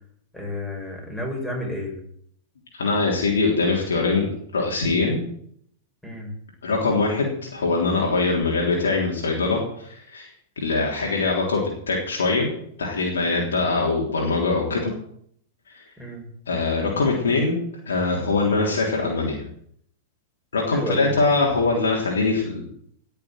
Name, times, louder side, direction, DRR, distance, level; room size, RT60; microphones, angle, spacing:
voice 1, 0.3-2.0 6.0-6.3 16.0-16.2 20.7-21.2, left 1 dB, ahead, -1 dB, 6.0 m, -31 dB
voice 2, 2.7-5.2 6.6-10.3 10.6-12.5 12.8-14.9 15.7-15.8 16.5-17.6 17.9-19.4 20.5-22.6, left 3 dB, 75° left, -2 dB, 3.4 m, -23 dB
18.5 x 6.9 x 7.7 m, 0.66 s
hypercardioid pair, 105°, 0 cm